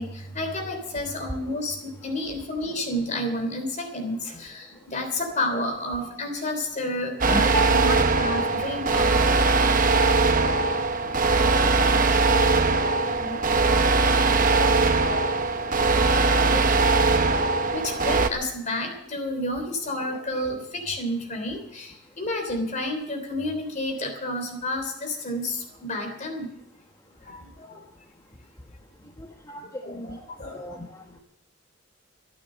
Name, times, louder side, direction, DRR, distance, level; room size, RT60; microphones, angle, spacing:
voice 1, 0.0-9.5 14.5-14.8 17.7-26.5 27.2-27.8 29.8-30.8, left 1 dB, 40° left, 4 dB, 3.5 m, -31 dB
sound 1, 7.2-18.3, right 3 dB, 40° right, 0.9 m, -21 dB
voice 2, 7.3-7.7 11.9-12.4 13.0-13.9 15.8-15.9 16.5-16.7 29.2-29.6 29.9-30.2 30.5-30.9, equal, 15° left, 2 dB, 1.1 m, -35 dB
14.0 x 11.0 x 7.5 m, 0.80 s
head